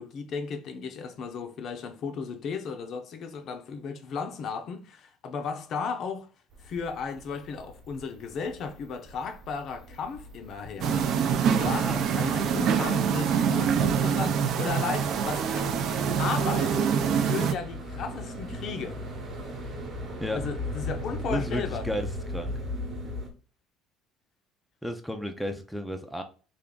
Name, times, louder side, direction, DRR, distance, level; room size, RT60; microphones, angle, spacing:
voice 1, 0.0-6.3 6.6-11.1 11.6-19.0 20.3-21.9, left 5 dB, 50° left, 0.5 m, -35 dB
sound 1, 6.5-23.3, left 1 dB, 40° right, 1.0 m, -39 dB
sound 2, 10.8-17.5, right 7 dB, 55° right, 0.5 m, -25 dB
voice 2, 11.6-12.0 20.2-20.4 21.3-22.5 24.8-26.2, equal, ahead, 0.4 m, -33 dB
3.4 x 2.4 x 3.7 m
cardioid pair, 135°, 0 cm